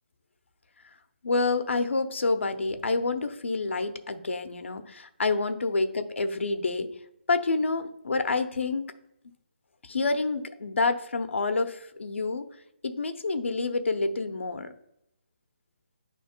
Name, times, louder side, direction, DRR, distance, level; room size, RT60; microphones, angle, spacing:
voice 1, 1.2-6.9 7.3-8.8 9.8-12.4 12.8-14.7, left 3 dB, 90° left, 7 dB, 0.8 m, -28 dB
9.3 x 3.1 x 4.4 m, 0.81 s
hypercardioid pair, 170°, 6 cm